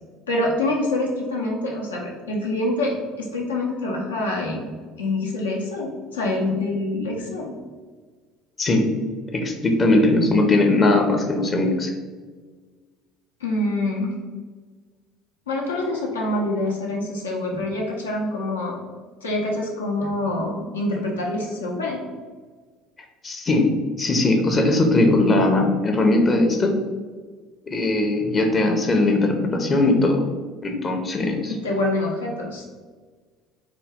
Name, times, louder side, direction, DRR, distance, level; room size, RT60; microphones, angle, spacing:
voice 1, 0.3-4.7 5.0-7.5 13.4-14.1 15.5-18.8 19.2-22.0 31.5-32.6, left 2 dB, 85° left, -2 dB, 0.7 m, -26 dB
voice 2, 9.3-11.9 23.2-23.7 24.0-26.7 27.7-30.2 30.6-31.5, left 2 dB, 30° left, 3 dB, 0.6 m, -19 dB
3.9 x 2.3 x 3.5 m, 1.5 s
figure-of-eight pair, 60°, 0 cm